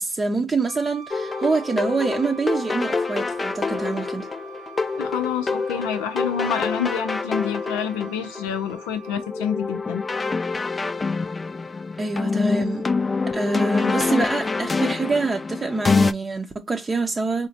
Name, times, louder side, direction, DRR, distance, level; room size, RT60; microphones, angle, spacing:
voice 1, 0.0-4.3 12.0-12.9 13.3-17.5, right 3 dB, 30° right, 0.6 m, -25 dB
Wind instrument woodwind instrument, 0.7-9.3, right 6 dB, 80° right, 0.4 m, -44 dB
sound 1, 1.1-16.1, left 4 dB, 30° left, 0.4 m, -26 dB
voice 2, 5.0-10.0, left 8 dB, 85° left, 0.5 m, -28 dB
4.0 x 2.1 x 2.7 m
supercardioid pair, 60°, 0 cm